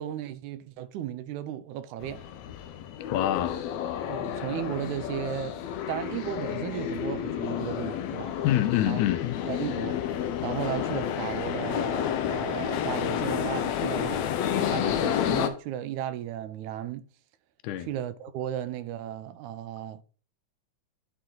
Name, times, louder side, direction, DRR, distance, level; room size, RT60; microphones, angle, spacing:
voice 1, 0.0-2.2 4.1-5.6 5.9-8.4 8.9-9.0 9.4-10.2 10.4-17.1 17.9-20.0, right 11 dB, 85° right, 2.0 m, -35 dB
sound 1, 2.0-15.5, left 9 dB, 70° left, 1.9 m, -30 dB
voice 2, 3.1-3.6 8.4-9.4 17.6-17.9, left 13 dB, 90° left, 2.2 m, -26 dB
11.5 x 4.4 x 3.8 m
omnidirectional pair, 3.5 m